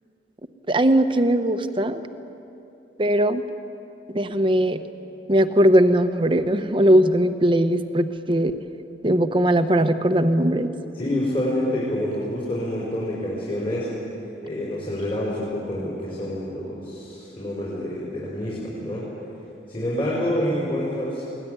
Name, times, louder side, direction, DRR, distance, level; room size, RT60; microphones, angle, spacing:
voice 1, 0.7-2.0 3.0-3.4 4.1-4.8 5.3-8.6 9.0-10.7, right 1 dB, 30° right, 8 dB, 1.0 m, -19 dB
voice 2, 10.9-13.9 14.4-19.1 19.7-21.3, left 1 dB, 30° left, -6 dB, 5.5 m, -27 dB
23.0 x 18.5 x 9.7 m, 2.9 s
head